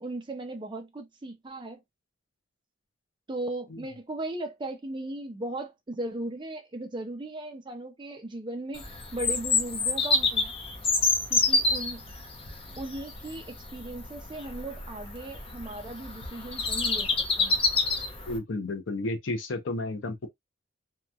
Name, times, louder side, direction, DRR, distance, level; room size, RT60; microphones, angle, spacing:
voice 1, 0.0-1.8 3.3-10.5 11.3-12.0 12.8-17.1 17.4-17.6, right 2 dB, 25° right, 0.5 m, -37 dB
Bird vocalization bird call bird song, 8.7-18.4, left 3 dB, 30° left, 0.6 m, -28 dB
voice 2, 18.3-20.3, left 2 dB, 70° left, 0.6 m, -32 dB
2.8 x 2.3 x 2.3 m
head